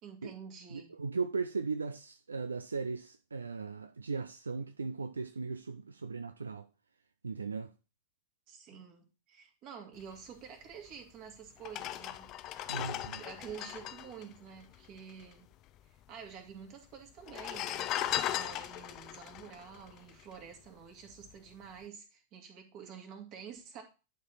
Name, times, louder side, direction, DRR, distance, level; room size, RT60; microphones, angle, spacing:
voice 1, 0.0-0.9 8.5-12.3 13.2-15.5 15.8-23.8, right 7 dB, 40° right, 2.2 m, -49 dB
voice 2, 0.7-6.7 7.2-7.7 8.7-8.8 12.7-13.2, right 4 dB, 75° right, 0.4 m, -37 dB
sound 1, 10.9-11.0 11.6-15.3 15.5-15.6 15.8-16.5 17.2-20.7 21.1-21.3, left 13 dB, 35° left, 0.5 m, -38 dB
11.0 x 4.4 x 4.0 m
figure-of-eight pair, 90°, 0 cm